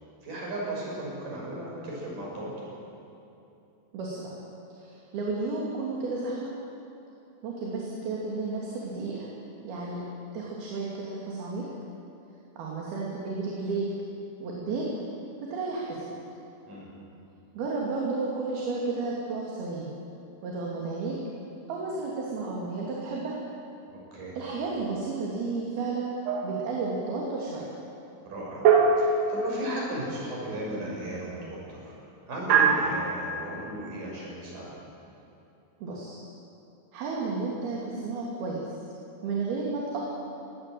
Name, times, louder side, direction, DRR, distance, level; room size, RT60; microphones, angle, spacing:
voice 1, 0.2-2.5 16.7-16.9 23.9-24.3 28.2-28.7 29.0-31.9 32.3-34.7, right 1 dB, 55° right, -4 dB, 7.5 m, -35 dB
voice 2, 4.8-6.5 7.4-9.3 9.6-10.0 10.3-11.7 12.6-13.9 14.4-14.9 15.4-16.2 17.5-19.9 20.4-21.2 21.7-23.4 24.4-26.1 26.4-27.6 35.8-36.2 36.9-38.7 39.2-40.0, right 3 dB, 70° right, -4 dB, 4.3 m, -32 dB
sound 1, 26.3-26.9 28.7-30.0 32.5-33.3, right 5 dB, 90° right, 4.2 m, -23 dB
21.0 x 18.0 x 7.7 m, 2.8 s
omnidirectional pair, 4.6 m